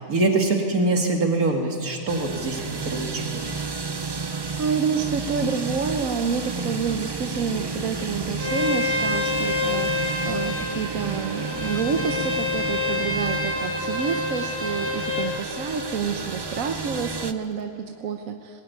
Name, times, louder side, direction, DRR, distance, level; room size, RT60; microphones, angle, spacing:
voice 1, 0.1-3.4, right 2 dB, 90° right, 2 dB, 2.7 m, -24 dB
sound 1, 2.1-17.3, right 4 dB, 30° right, 0.5 m, -32 dB
voice 2, 4.2-18.6, right 6 dB, 70° right, 5 dB, 1.3 m, -28 dB
Bowed string instrument, 8.4-15.3, left 3 dB, 10° left, 2.6 m, -27 dB
20.5 x 18.0 x 9.5 m, 2.5 s
omnidirectional pair, 1.5 m